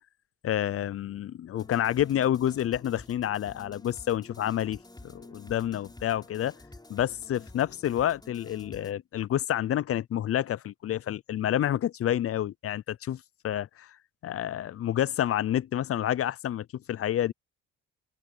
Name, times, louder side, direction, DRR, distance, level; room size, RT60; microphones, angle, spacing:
voice 1, 0.4-6.5 6.9-14.0 14.2-17.3, left 11 dB, 50° left, 0.5 m, -29 dB
sound 1, 1.6-8.9, left 2 dB, 15° left, 7.2 m, -50 dB
cardioid pair, 90°, 30 cm